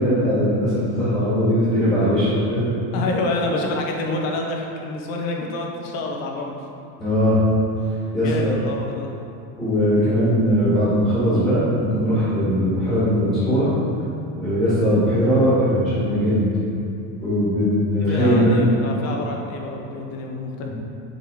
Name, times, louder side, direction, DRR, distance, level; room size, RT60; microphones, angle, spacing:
voice 1, 0.0-2.6 7.0-7.4 8.1-8.6 9.6-13.7 14.4-16.4 17.2-18.5 20.6-20.7, equal, 10° left, -13 dB, 1.5 m, -19 dB
voice 2, 2.9-6.6 7.0-7.1 8.2-9.1 18.0-20.7, left 2 dB, 40° left, 1 dB, 0.7 m, -28 dB
7.3 x 3.7 x 3.5 m, 2.7 s
cardioid pair, 175°, 40 cm